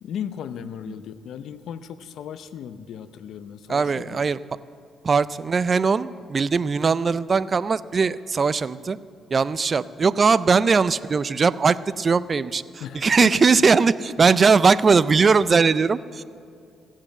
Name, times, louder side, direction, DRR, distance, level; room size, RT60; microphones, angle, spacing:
voice 1, 0.0-4.2 12.8-13.5, left 8 dB, 75° left, 13 dB, 0.6 m, -35 dB
voice 2, 3.7-4.4 5.0-9.0 9.3-16.2, right 5 dB, 40° right, 17 dB, 0.4 m, -20 dB
15.5 x 7.4 x 7.7 m, 2.5 s
cardioid pair, 90°, 0 cm